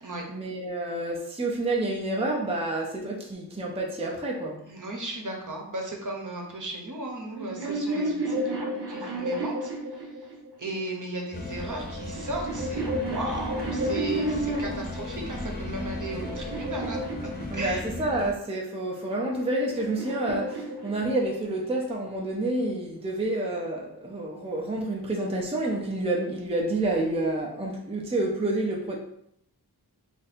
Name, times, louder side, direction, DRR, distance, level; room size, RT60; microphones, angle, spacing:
voice 1, 0.3-4.6 17.5-29.0, right 2 dB, 15° right, -1 dB, 0.5 m, -29 dB
voice 2, 4.7-10.0 10.6-17.0 17.5-17.8 18.1-18.2, right 2 dB, 50° right, 0 dB, 0.9 m, -36 dB
sound 1, 7.2-10.6 11.6-15.0 15.6-18.0 19.1-21.5, right 1 dB, 75° right, 0.8 m, -32 dB
sound 2, 11.3-18.3, left 2 dB, 25° left, 0.8 m, -36 dB
2.7 x 2.6 x 4.1 m, 0.74 s
wide cardioid pair, 50°, 40 cm